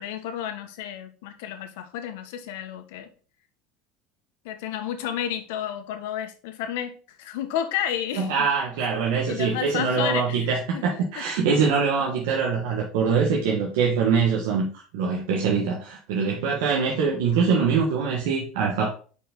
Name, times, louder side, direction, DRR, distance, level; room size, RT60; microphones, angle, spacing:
voice 1, 0.0-3.1 4.4-8.3 9.2-10.5 10.7-10.8 11.2-11.3, left 10 dB, 85° left, 7 dB, 1.2 m, -31 dB
voice 2, 8.2-18.9, right 5 dB, 85° right, -1 dB, 1.5 m, -23 dB
5.4 x 4.7 x 5.2 m, 0.39 s
cardioid pair, 160°, 0 cm